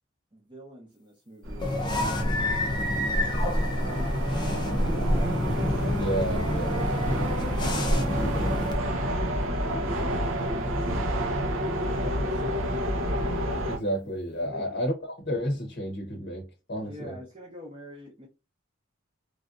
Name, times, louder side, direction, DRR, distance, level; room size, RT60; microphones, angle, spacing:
voice 1, 0.3-2.5 3.8-5.4 8.0-11.2 12.0-12.8 14.4-14.8 16.8-18.3, equal, 25° right, 0.8 m, -46 dB
sound 1, 1.4-13.8, equal, 90° right, 0.8 m, -30 dB
sound 2, 1.6-8.7, left 1 dB, 20° left, 0.4 m, -27 dB
voice 2, 5.9-6.8 13.7-17.2, equal, 45° left, 0.8 m, -31 dB
3.3 x 2.5 x 2.4 m
head